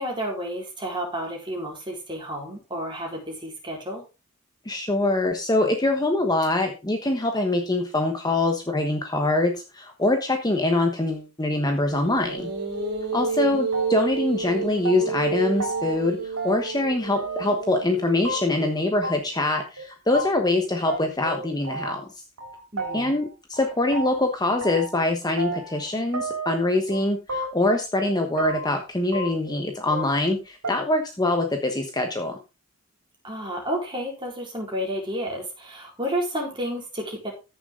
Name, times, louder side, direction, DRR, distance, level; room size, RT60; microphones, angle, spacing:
voice 1, 0.0-4.0 13.4-13.6 22.7-23.2 33.2-37.3, equal, 20° right, -1 dB, 4.4 m, -31 dB
voice 2, 4.6-12.5 13.1-22.1 22.9-32.4, left 2 dB, 20° left, 4 dB, 1.2 m, -24 dB
sound 1, 11.9-19.2, right 4 dB, 45° right, 2.9 m, -31 dB
sound 2, 13.7-14.2 14.5-15.3 15.6-16.0 16.4-16.9 17.2-17.7 18.2-18.7 19.0-19.1 19.4-19.5 19.8-19.9 20.1-20.2 20.5-20.6 20.9-22.1 22.4-23.3 23.5-25.0 25.4-25.9 26.1-27.0 27.3-27.8 28.0-28.8 29.1-30.3 30.6-30.7, right 2 dB, 75° right, 3.3 m, -32 dB
14.5 x 6.9 x 3.8 m, 0.28 s
head